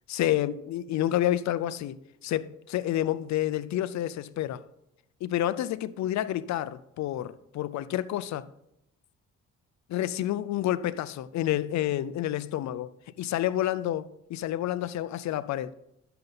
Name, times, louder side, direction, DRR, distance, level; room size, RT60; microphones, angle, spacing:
voice 1, 0.1-2.0 2.2-4.6 5.2-8.5 9.9-12.9 13.2-15.7, left 13 dB, 65° left, 0.5 m, -29 dB
10.5 x 6.8 x 4.0 m
cardioid pair, 90°, 30 cm